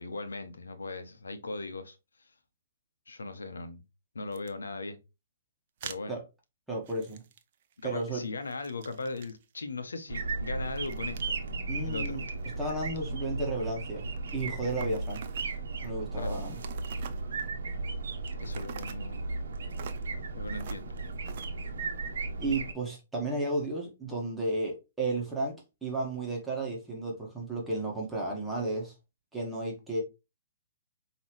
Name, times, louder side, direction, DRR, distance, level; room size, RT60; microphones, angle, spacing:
voice 1, 0.0-2.0 3.1-3.8 4.1-5.0 5.8-6.2 7.8-11.4 11.8-12.2 16.2-16.4 18.4-19.3 20.3-20.9, left 3 dB, 85° left, 0.9 m, -38 dB
sound 1, 4.3-4.5 5.8-6.0 6.9-7.9 8.2-9.5 10.6-11.3 11.8-12.9 14.2-15.6 16.5-17.6 18.4-19.1 19.8-20.1 20.5-20.8 21.2-21.5, right 8 dB, 50° right, 0.6 m, -46 dB
voice 2, 6.7-7.2 7.8-8.2 11.7-12.2 12.6-14.1 14.3-15.2 15.8-16.6 22.4-25.6 25.8-28.9 29.3-30.0, right 2 dB, 5° right, 1.6 m, -33 dB
sound 2, 10.1-22.7, right 3 dB, 70° right, 1.0 m, -35 dB
5.4 x 3.0 x 3.1 m
hypercardioid pair, 130°, 0 cm